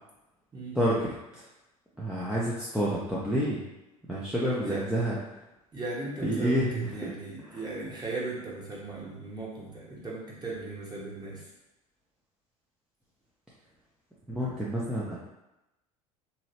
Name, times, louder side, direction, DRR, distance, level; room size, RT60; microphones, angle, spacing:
voice 1, 2.0-3.6 4.1-5.2 6.2-7.1 7.4-7.6 14.3-15.2, equal, 5° right, -8 dB, 0.7 m, -29 dB
voice 2, 4.5-4.8 5.7-11.4, right 2 dB, 20° right, -5 dB, 1.2 m, -37 dB
3.0 x 2.8 x 2.8 m, 0.94 s
figure-of-eight pair, 70°, 19 cm